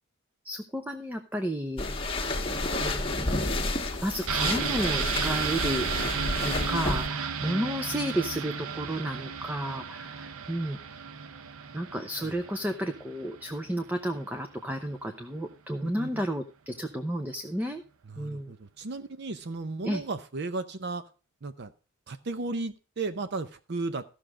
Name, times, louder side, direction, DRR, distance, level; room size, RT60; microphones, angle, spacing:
voice 1, 0.4-1.9 2.8-3.1 4.0-6.1 6.4-10.8 11.7-17.8 18.2-18.5 19.8-20.0, equal, 10° right, 6 dB, 0.7 m, -32 dB
sound 1, 1.8-7.1, left 2 dB, 25° left, 1.4 m, -30 dB
sound 2, 4.3-13.9 14.2-14.3, right 7 dB, 90° right, 0.7 m, -34 dB
voice 2, 15.8-16.2 18.1-21.0 21.4-21.7 22.1-24.0, right 3 dB, 55° right, 11 dB, 0.6 m, -35 dB
14.0 x 6.4 x 4.9 m, 0.35 s
head